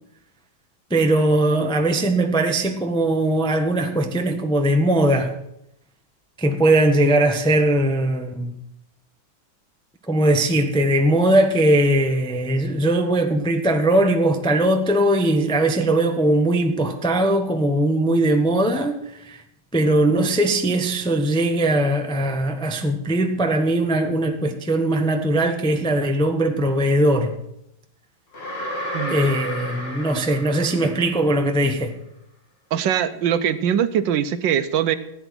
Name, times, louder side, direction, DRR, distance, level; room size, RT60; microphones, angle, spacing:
voice 1, 0.9-5.3 6.4-8.6 10.1-19.4 19.7-27.4 29.1-32.0, right 1 dB, 5° left, 0.4 m, -20 dB
sound 1, 28.3-31.4, equal, 30° left, 2.3 m, -32 dB
voice 2, 32.7-35.0, right 9 dB, 75° right, 1.3 m, -21 dB
15.0 x 9.1 x 6.1 m
omnidirectional pair, 2.2 m